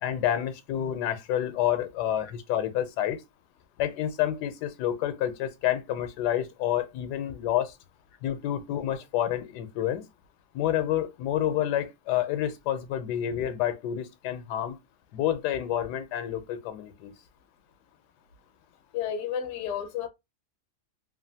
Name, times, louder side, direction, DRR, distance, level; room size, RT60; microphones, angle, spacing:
voice 1, 0.0-3.2 3.8-7.7 8.2-10.0 10.5-14.8 15.1-17.1, left 11 dB, 85° left, 1.1 m, -29 dB
voice 2, 18.9-20.1, left 8 dB, 65° left, 0.7 m, -31 dB
2.8 x 2.4 x 2.6 m
omnidirectional pair, 1.7 m